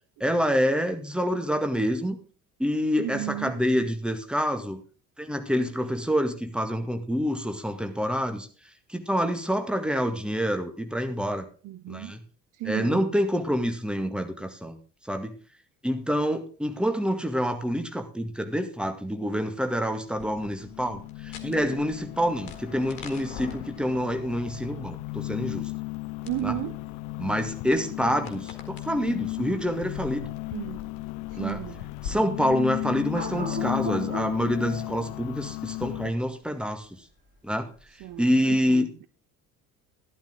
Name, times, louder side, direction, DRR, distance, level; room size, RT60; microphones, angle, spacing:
voice 1, 0.2-2.2 2.6-4.8 5.2-8.5 8.9-11.4 11.9-12.2 12.6-14.8 15.1-15.3 15.8-25.7 26.4-26.5 27.2-30.3 31.4-31.6 32.0-37.0 37.4-37.7 38.2-38.9, equal, ahead, 1.9 m, -27 dB
voice 2, 3.0-3.6 11.6-12.1 12.5-13.1 26.3-26.8 30.5-30.9 31.3-31.9 38.0-39.1, right 17 dB, 45° right, 0.7 m, -34 dB
sound 1, 19.8-36.1, left 23 dB, 45° left, 0.4 m, -35 dB
sound 2, 20.2-32.1, left 8 dB, 70° left, 1.8 m, -46 dB
sound 3, 23.6-38.2, right 1 dB, 25° right, 5.4 m, -42 dB
12.5 x 11.5 x 3.8 m
figure-of-eight pair, 50°, 45 cm